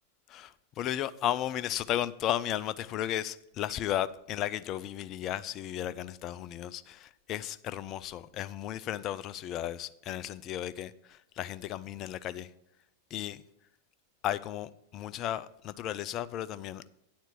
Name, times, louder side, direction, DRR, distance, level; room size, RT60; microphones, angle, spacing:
voice 1, 0.3-12.5 13.1-13.4 14.2-16.8, left 11 dB, 35° left, 0.4 m, -34 dB
9.3 x 4.4 x 7.1 m
figure-of-eight pair, 90°, 0 cm